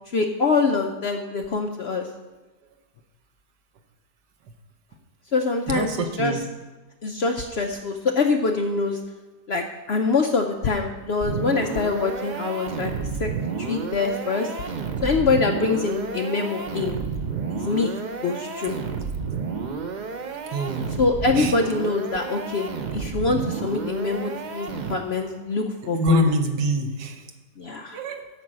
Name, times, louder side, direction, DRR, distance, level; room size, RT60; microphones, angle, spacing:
voice 1, 0.1-2.1 5.3-6.3 7.0-9.0 9.5-12.9 13.2-13.3 13.6-14.7 15.0-17.0 17.5-18.8 21.0-26.3 27.6-28.0, left 4 dB, 60° left, 4 dB, 0.7 m, -24 dB
voice 2, 5.7-6.4 20.5-20.9 21.3-21.5 25.9-27.3 27.9-28.2, equal, 90° right, 6 dB, 1.6 m, -25 dB
sound 1, 11.2-25.3, right 5 dB, 65° right, 0.4 m, -31 dB
8.6 x 6.0 x 7.4 m, 1.2 s
omnidirectional pair, 1.7 m